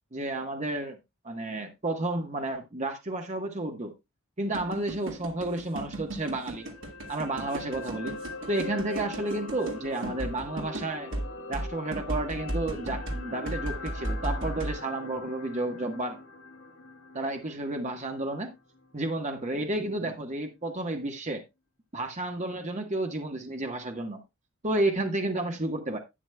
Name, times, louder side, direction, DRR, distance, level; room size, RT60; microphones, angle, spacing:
voice 1, 0.1-1.0 1.2-3.9 4.4-6.7 7.1-8.2 8.5-11.1 11.5-16.2 17.1-18.5 18.9-21.4 21.9-24.2 24.6-26.0, right 2 dB, 35° right, 1.2 m, -31 dB
sound 1, 4.5-14.8, right 1 dB, 65° right, 2.1 m, -35 dB
sound 2, 6.5-18.9 19.2-19.4, left 3 dB, 65° left, 1.6 m, -42 dB
11.0 x 9.1 x 2.3 m
head